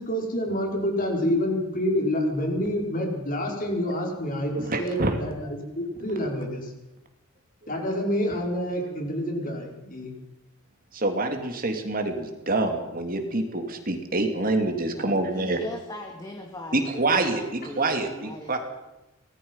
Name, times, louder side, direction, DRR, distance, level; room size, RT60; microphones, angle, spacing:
voice 1, 0.0-6.7 7.7-10.1, equal, 40° left, 1 dB, 5.4 m, -28 dB
voice 2, 4.5-5.2 10.9-15.6 16.7-18.6, right 2 dB, 40° right, 5 dB, 2.8 m, -26 dB
voice 3, 15.0-18.6, left 1 dB, 20° left, 2 dB, 2.4 m, -39 dB
25.0 x 19.0 x 5.7 m, 0.99 s
head